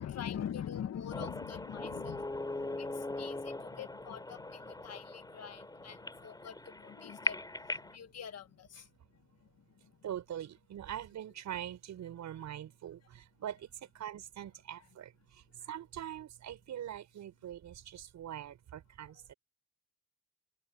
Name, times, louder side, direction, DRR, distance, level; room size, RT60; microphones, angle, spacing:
voice 1, 0.0-7.4 7.8-8.8, left 9 dB, 55° left, 1.6 m, -44 dB
sound 1, 1.1-8.0, left 2 dB, 15° left, 3.5 m, -40 dB
voice 2, 10.0-13.7 13.9-15.1 15.7-19.3, right 10 dB, 70° right, 6.8 m, -43 dB
cardioid pair, 90°, 30 cm